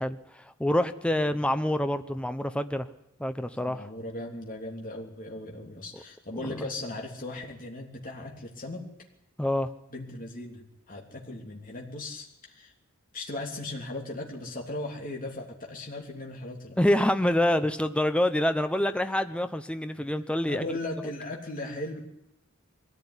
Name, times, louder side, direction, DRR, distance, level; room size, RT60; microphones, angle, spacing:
voice 1, 0.0-2.9 3.2-3.9 5.9-6.0 6.4-6.7 9.4-9.7 16.8-20.6, left 1 dB, 5° left, 9 dB, 0.8 m, -26 dB
voice 2, 3.5-8.8 9.9-12.7 13.1-16.8 20.5-22.0, left 2 dB, 40° left, 0 dB, 3.2 m, -38 dB
22.5 x 15.0 x 10.0 m, 0.83 s
head